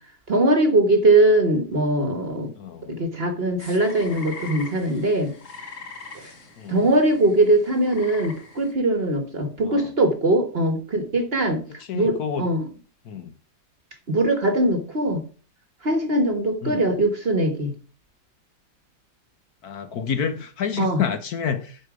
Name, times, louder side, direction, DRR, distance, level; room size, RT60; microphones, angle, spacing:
voice 1, 0.3-2.5 2.9-5.3 6.1-6.3 6.7-11.6 11.9-12.7 14.1-15.2 15.8-17.7 20.8-21.0, right 1 dB, 35° right, 1.3 m, -21 dB
voice 2, 2.6-2.9 6.6-6.9 9.6-9.9 11.8-12.5 13.0-13.3 16.6-16.8 19.6-21.9, left 7 dB, 60° left, 1.3 m, -29 dB
sound 1, 3.6-8.7, left 4 dB, 45° left, 1.8 m, -42 dB
12.0 x 5.0 x 4.9 m
omnidirectional pair, 1.9 m